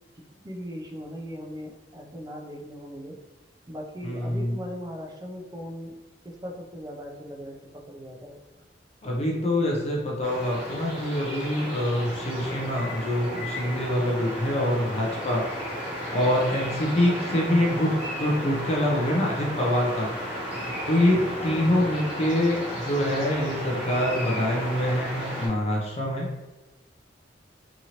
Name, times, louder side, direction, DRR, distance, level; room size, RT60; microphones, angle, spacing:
voice 1, 0.3-3.2 3.7-6.0 6.2-8.4 21.5-22.0, equal, 20° right, -1 dB, 0.4 m, -39 dB
voice 2, 4.0-4.6 9.0-15.4 16.1-17.9 18.2-20.1 20.9-26.4, left 1 dB, 35° left, -2 dB, 0.5 m, -25 dB
sound 1, 10.2-25.5, equal, 5° right, 1.0 m, -34 dB
2.9 x 2.5 x 2.8 m, 1.1 s
head